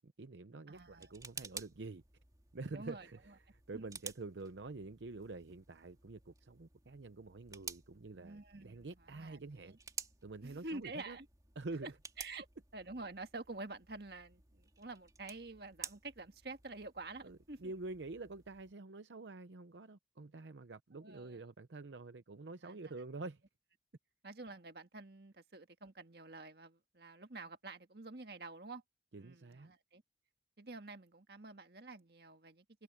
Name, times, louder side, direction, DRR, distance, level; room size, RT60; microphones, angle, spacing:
voice 1, 0.0-2.0 2.5-9.8 10.2-11.2 11.6-11.9 17.2-23.4 29.1-29.7, right 3 dB, 80° right, 0.7 m, -47 dB
sound 1, 0.7-18.7, right 5 dB, 20° right, 2.8 m, -53 dB
voice 2, 0.7-1.1 2.7-3.3 3.7-3.9 8.1-9.8 10.4-11.3 11.8-11.9 12.2-12.5 12.7-17.7 21.0-21.4 22.6-22.9 24.2-28.8 29.1-30.0 30.6-32.8, right 2 dB, 60° right, 1.8 m, -49 dB
head